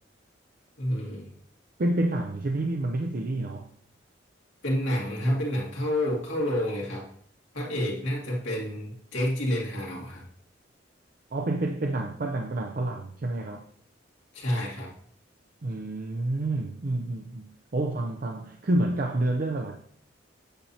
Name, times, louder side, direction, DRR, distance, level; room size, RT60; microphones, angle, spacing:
voice 1, 0.8-1.3 4.6-7.1 7.5-10.2 14.3-14.9, left 1 dB, 85° left, 2.3 m, -29 dB
voice 2, 1.8-3.7 11.3-13.7 15.6-19.8, right 1 dB, 45° right, 0.5 m, -29 dB
8.7 x 6.8 x 2.8 m
head